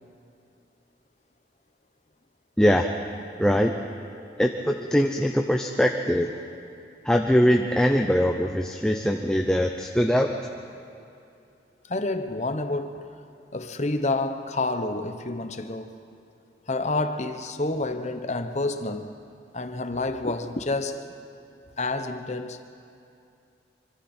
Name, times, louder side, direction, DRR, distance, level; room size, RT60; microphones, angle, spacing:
voice 1, 2.6-2.9 3.4-3.7 4.4-6.3 7.0-10.3, equal, 5° left, 0.7 m, -22 dB
voice 2, 11.9-13.1 13.5-16.0 16.7-19.1 19.5-21.1 21.8-22.7, left 2 dB, 40° left, 0.9 m, -29 dB
25.5 x 25.0 x 4.4 m
head